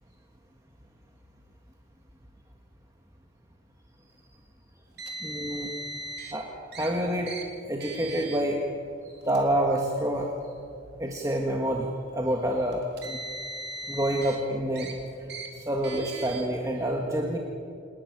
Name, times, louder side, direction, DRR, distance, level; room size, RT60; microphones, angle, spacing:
Car, 5.0-6.3 6.7-6.9 7.3-7.4 7.8-8.4 9.2-9.4 10.3-10.4 12.7-14.4 14.8-14.9 15.3-15.5 15.8-16.4, right 2 dB, 55° right, 3.2 m, -38 dB
voice 1, 5.2-5.7 6.3-6.5 6.7-7.3 7.7-8.6 9.2-10.3 11.0-13.2 13.9-14.9 15.5-17.4, right 1 dB, 15° right, 0 dB, 1.6 m, -27 dB
28.0 x 11.5 x 9.9 m, 2.5 s
head